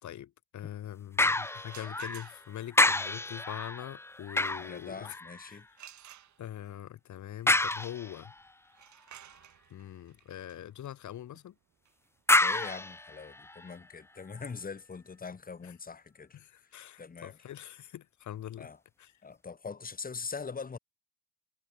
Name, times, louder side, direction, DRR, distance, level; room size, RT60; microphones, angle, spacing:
voice 1, 0.0-5.2 5.5-5.6 6.4-8.3 9.7-11.5 15.6-15.7 16.3-18.7 19.0-19.1, left 11 dB, 70° left, 4.4 m, -43 dB
sound 1, 1.2-2.4 2.7-5.6 7.5-8.4 12.3-13.7 14.3-14.4, left 2 dB, 10° left, 0.6 m, -29 dB
sound 2, 1.6-2.7 5.8-6.8 8.7-14.3, right 11 dB, 70° right, 5.5 m, -55 dB
voice 2, 4.5-5.7 12.4-16.4 17.0-17.4 18.6-18.8 19.2-20.8, left 5 dB, 30° left, 1.7 m, -42 dB
cardioid pair, 90°, 30 cm